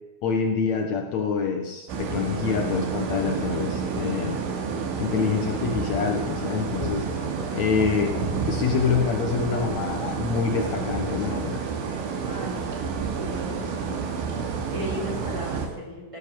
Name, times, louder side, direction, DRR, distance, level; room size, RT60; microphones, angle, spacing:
voice 1, 0.2-4.4 5.0-7.1 7.5-11.7, left 6 dB, 90° left, 4 dB, 1.5 m, -26 dB
sound 1, 1.9-15.7, right 5 dB, 80° right, 4.7 m, -30 dB
sound 2, 6.0-12.1, left 8 dB, 70° left, 3.2 m, -43 dB
voice 2, 12.2-12.7 13.1-13.6 14.7-16.2, left 1 dB, 5° right, -2 dB, 4.0 m, -36 dB
18.0 x 11.5 x 6.9 m, 1.2 s
omnidirectional pair, 5.4 m